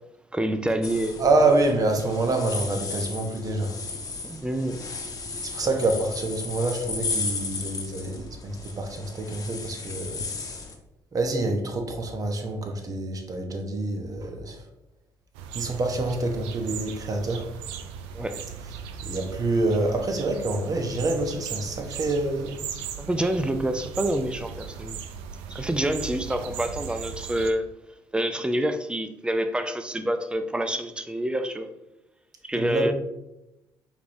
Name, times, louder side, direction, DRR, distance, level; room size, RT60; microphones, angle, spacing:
voice 1, 0.3-1.2 4.2-4.8 18.1-18.4 23.0-25.0 25.5-27.6 28.1-31.7 32.4-32.9, right 1 dB, 10° right, 0.5 m, -27 dB
sound 1, 0.8-10.7, left 4 dB, 40° left, 0.9 m, -35 dB
voice 2, 1.2-3.8 5.4-10.2 11.1-14.6 15.5-17.5 19.0-22.6 32.6-32.9, right 2 dB, 40° right, 1.0 m, -26 dB
sound 2, 15.4-27.5, right 7 dB, 85° right, 0.4 m, -38 dB
4.9 x 3.4 x 2.6 m
supercardioid pair, 60°, 9 cm